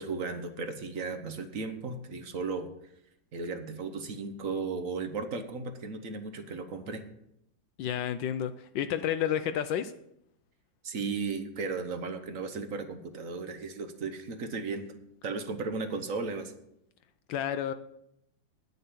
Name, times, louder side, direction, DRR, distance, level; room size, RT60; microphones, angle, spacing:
voice 1, 0.0-2.7 3.3-7.0 10.8-14.9 15.2-16.5, right 4 dB, 50° right, 8 dB, 1.3 m, -35 dB
voice 2, 7.8-9.9 17.3-17.7, left 10 dB, 80° left, 10 dB, 1.2 m, -30 dB
9.8 x 6.7 x 8.3 m, 0.78 s
omnidirectional pair, 2.1 m